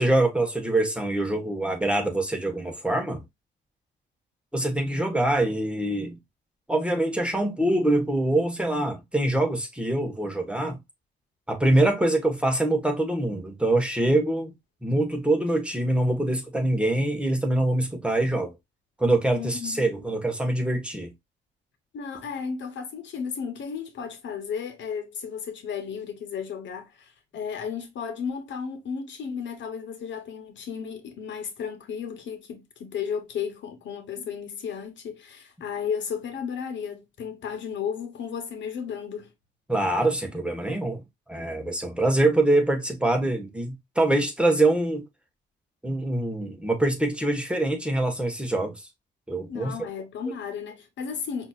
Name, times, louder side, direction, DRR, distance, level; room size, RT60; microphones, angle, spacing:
voice 1, 0.0-3.2 4.5-6.2 6.7-10.8 11.5-14.5 14.8-18.6 19.0-21.1 39.7-41.0 41.3-45.1 45.8-48.8 49.3-49.9, right 1 dB, 5° right, 1.2 m, -24 dB
voice 2, 19.3-20.2 21.9-39.3 49.5-51.5, left 7 dB, 70° left, 1.1 m, -34 dB
5.7 x 2.8 x 2.3 m
cardioid pair, 90°, 20 cm